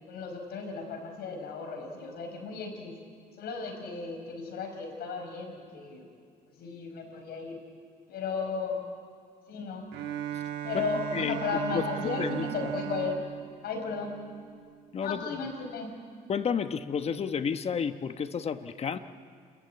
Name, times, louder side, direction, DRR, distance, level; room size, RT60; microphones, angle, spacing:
voice 1, 0.1-2.9 3.4-6.1 6.6-7.6 8.1-8.8 9.5-9.9 10.6-13.2 13.6-14.2 15.0-16.0, left 4 dB, 70° left, 4 dB, 5.0 m, -35 dB
Bowed string instrument, 9.9-14.7, right 11 dB, 75° right, 1.5 m, -37 dB
voice 2, 11.7-12.7 14.9-15.3 16.3-19.0, left 6 dB, 35° left, 10 dB, 1.1 m, -31 dB
29.5 x 14.0 x 9.5 m, 2.1 s
cardioid pair, 110°, 17 cm